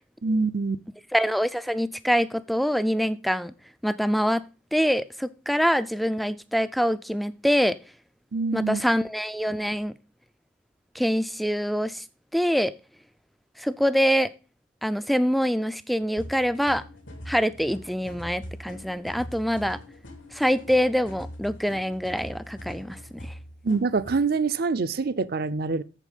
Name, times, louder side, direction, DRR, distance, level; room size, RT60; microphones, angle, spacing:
voice 1, 0.2-0.8 8.3-8.8 23.6-25.8, right 4 dB, 50° right, 0.6 m, -25 dB
voice 2, 1.1-3.5 3.8-4.5 4.7-7.8 8.5-9.9 10.9-12.0 12.3-12.7 13.6-14.3 14.8-16.8 17.3-19.8 20.3-23.3, equal, ahead, 0.4 m, -25 dB
sound 1, 16.2-24.2, equal, 85° left, 2.6 m, -42 dB
8.4 x 7.3 x 5.3 m
head